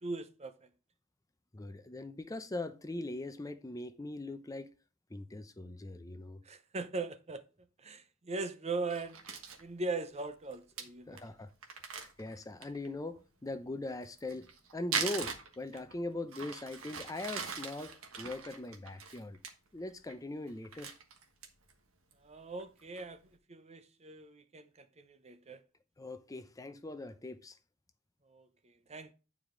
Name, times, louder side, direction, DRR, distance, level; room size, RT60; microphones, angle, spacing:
voice 1, 0.0-0.7 6.4-7.4 7.8-9.2 9.6-11.2 22.2-23.2 23.5-25.6 28.3-29.1, right 3 dB, 30° right, 0.7 m, -40 dB
voice 2, 1.5-4.7 5.1-6.4 11.1-11.5 11.9-19.4 19.7-20.9 26.0-27.6, left 2 dB, 15° left, 0.6 m, -41 dB
Crumpling crinkling, 8.9-9.6 10.2-10.3 10.5-10.6 10.8-10.9 11.2-11.3 11.6-12.9 14.0-16.0 16.3-19.5 19.9-20.2 20.5-21.7 22.1-22.2 22.6-23.0, right 5 dB, 75° right, 1.4 m, -40 dB
9.2 x 4.9 x 3.8 m
head